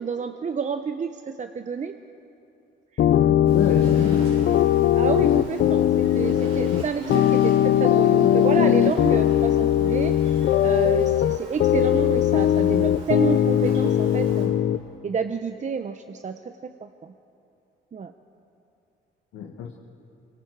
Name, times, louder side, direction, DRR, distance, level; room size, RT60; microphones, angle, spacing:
voice 1, 0.0-1.9 2.9-3.0 3.4-3.8 4.9-14.5 15.0-17.1 17.9-18.1, right 6 dB, 40° right, 8 dB, 0.8 m, -30 dB
voice 2, 3.0-4.2 5.2-5.7 19.3-19.7, left 8 dB, 90° left, 0 dB, 1.5 m, -29 dB
sound 1, 3.0-14.8, left 11 dB, 65° left, 0.7 m, -20 dB
Insect, 3.4-14.5, right 3 dB, 80° right, 7.2 m, -41 dB
25.5 x 23.5 x 4.7 m, 2.7 s
cardioid pair, 90°, 20 cm